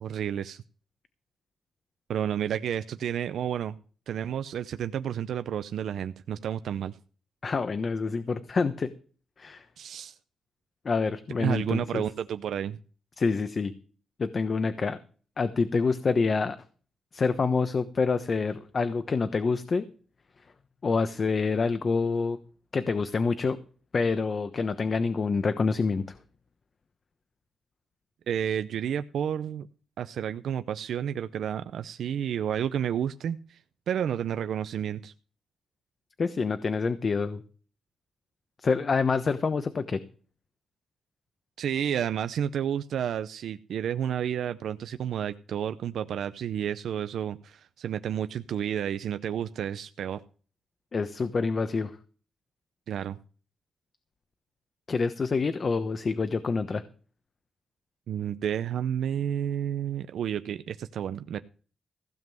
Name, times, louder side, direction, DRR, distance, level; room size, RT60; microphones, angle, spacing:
voice 1, 0.0-0.6 2.1-3.8 4.1-7.0 9.8-10.2 11.4-12.8 28.3-29.7 30.0-33.6 33.9-35.1 41.6-50.2 52.9-53.2 58.1-61.4, right 9 dB, 80° right, 11 dB, 0.6 m, -31 dB
voice 2, 7.4-8.9 9.4-9.6 10.8-12.0 13.2-13.7 14.2-15.0 15.4-16.6 17.1-19.8 20.8-22.4 22.7-23.6 23.9-26.0 36.2-37.4 38.6-40.0 50.9-52.0 54.9-56.8, left 4 dB, 50° left, 11 dB, 1.0 m, -27 dB
16.0 x 5.3 x 7.7 m, 0.41 s
cardioid pair, 70°, 0 cm